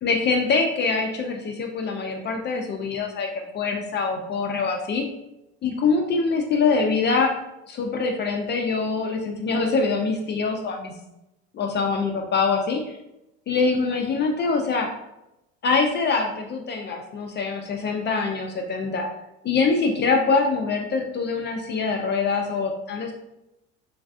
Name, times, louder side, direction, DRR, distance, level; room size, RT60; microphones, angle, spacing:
voice 1, 0.0-5.0 5.6-7.3 7.7-10.9 11.5-12.8 13.5-14.9 15.6-19.1 19.4-23.1, left 4 dB, 30° left, 2 dB, 0.4 m, -24 dB
3.1 x 2.3 x 2.5 m, 0.88 s
supercardioid pair, 90°, 33 cm